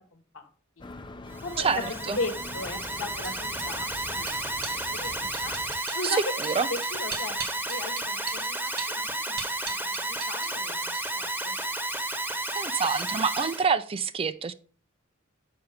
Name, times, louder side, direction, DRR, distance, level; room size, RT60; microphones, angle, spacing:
voice 1, 0.1-0.5 0.8-0.9 1.4-1.8 2.2-4.5 4.9-5.6 5.9-6.2 6.7-7.4 7.7-11.6, left 2 dB, 70° left, 1.2 m, -37 dB
sound 1, 0.8-5.8, left 2 dB, 25° left, 0.5 m, -43 dB
Alarm, 1.3-13.7, right 1 dB, 10° right, 1.0 m, -32 dB
voice 2, 1.6-2.2 6.0-6.7 12.6-14.5, right 5 dB, 30° right, 0.4 m, -27 dB
sound 2, 2.1-10.5 10.8-11.3, right 6 dB, 50° right, 1.2 m, -40 dB
7.0 x 5.8 x 4.9 m
head